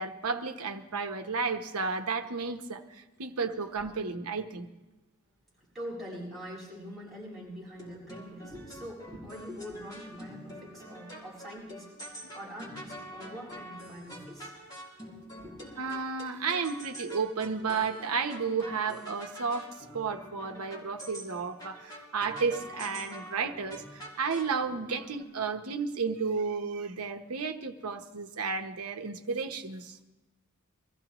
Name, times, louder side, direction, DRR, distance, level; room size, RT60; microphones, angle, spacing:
voice 1, 0.0-4.7 15.8-19.7 19.9-30.0, right 5 dB, 80° right, 6 dB, 0.9 m, -32 dB
voice 2, 5.7-11.9 12.3-14.5 15.4-15.6, equal, ahead, -9 dB, 6.9 m, -43 dB
sound 1, 7.7-25.2, equal, 20° left, 2.8 m, -46 dB
23.5 x 15.0 x 3.0 m, 1.1 s
head